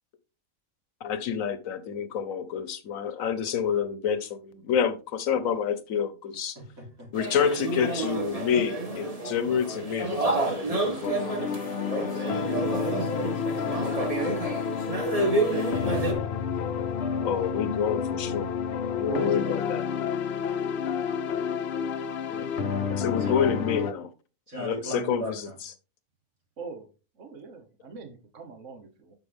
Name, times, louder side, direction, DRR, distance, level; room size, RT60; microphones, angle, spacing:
voice 1, 1.0-6.6 7.1-11.5 17.2-18.5 18.9-19.8 22.3-22.5 22.9-24.1 24.6-25.5, left 7 dB, 75° left, 1.2 m, -28 dB
voice 2, 6.6-7.1 11.9-17.1 23.2-23.5 24.5-25.6, equal, 85° right, 4.0 m, -41 dB
sound 1, 7.1-16.1, right 2 dB, 25° right, 1.6 m, -29 dB
sound 2, 11.0-23.9, left 7 dB, 55° left, 0.9 m, -30 dB
voice 3, 19.0-19.6 23.0-23.2 26.6-26.9 27.2-29.1, right 5 dB, 65° right, 1.6 m, -39 dB
9.2 x 6.0 x 3.5 m
omnidirectional pair, 1.4 m